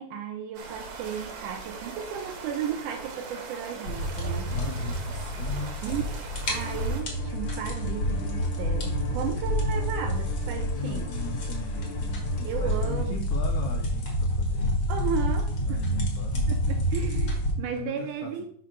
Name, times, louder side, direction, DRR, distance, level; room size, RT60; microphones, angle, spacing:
voice 1, 0.0-4.5 5.8-6.0 6.5-11.1 12.4-13.2 14.9-15.8 16.5-18.5, right 8 dB, 80° right, 5 dB, 1.8 m, -34 dB
sound 1, 0.5-7.0, right 4 dB, 65° right, 1.9 m, -41 dB
sound 2, 3.9-17.5, equal, 45° left, 1.5 m, -28 dB
voice 2, 4.5-5.8 10.7-14.7 15.6-16.5 17.6-18.5, left 6 dB, 85° left, 4 dB, 1.6 m, -39 dB
Bowed string instrument, 6.5-13.1, left 5 dB, 65° left, 2.0 m, -43 dB
4.9 x 4.8 x 5.8 m, 0.63 s
omnidirectional pair, 4.2 m